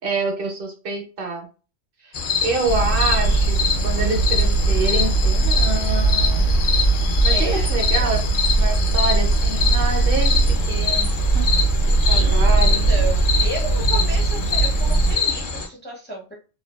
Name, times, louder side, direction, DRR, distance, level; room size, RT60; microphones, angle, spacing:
voice 1, 0.0-1.5 2.0-2.1 2.4-6.6 7.2-8.2 8.5-11.5 11.9-12.9, right 3 dB, 65° right, 3 dB, 0.8 m, -27 dB
sound 1, 2.1-15.7, left 5 dB, 60° left, 0.7 m, -25 dB
sound 2, 2.7-15.2, right 3 dB, 75° left, 1.1 m, -20 dB
voice 2, 7.3-8.0 11.9-12.4 12.9-16.3, right 2 dB, 15° left, -1 dB, 0.4 m, -33 dB
2.5 x 2.3 x 2.2 m, 0.35 s
omnidirectional pair, 1.1 m